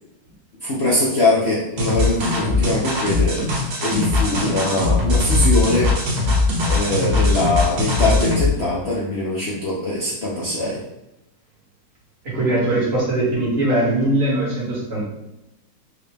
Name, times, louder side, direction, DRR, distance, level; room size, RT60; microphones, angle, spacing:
voice 1, 0.6-5.9 6.7-10.8, left 2 dB, 70° left, -6 dB, 0.6 m, -22 dB
sound 1, 1.8-8.5, left 2 dB, 75° right, 1.8 m, -20 dB
voice 2, 12.2-15.0, right 1 dB, 35° right, -6 dB, 1.6 m, -20 dB
4.8 x 2.5 x 3.3 m, 0.91 s
omnidirectional pair, 2.1 m